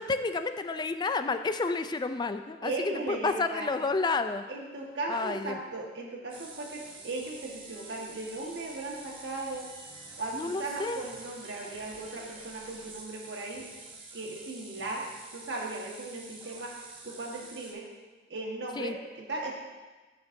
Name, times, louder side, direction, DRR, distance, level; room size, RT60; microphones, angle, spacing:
voice 1, 0.0-2.7 3.1-4.4 5.1-5.6 10.3-11.0 18.8-18.9, left 3 dB, 25° left, 9 dB, 0.3 m, -30 dB
voice 2, 2.6-3.7 4.5-9.7 10.2-13.7 14.1-15.0 15.3-16.7 17.0-17.9 18.3-19.5, right 2 dB, 70° right, -2 dB, 1.5 m, -37 dB
sound 1, 6.3-17.7, right 3 dB, 30° right, 1.1 m, -47 dB
12.0 x 5.9 x 2.7 m, 1.3 s
head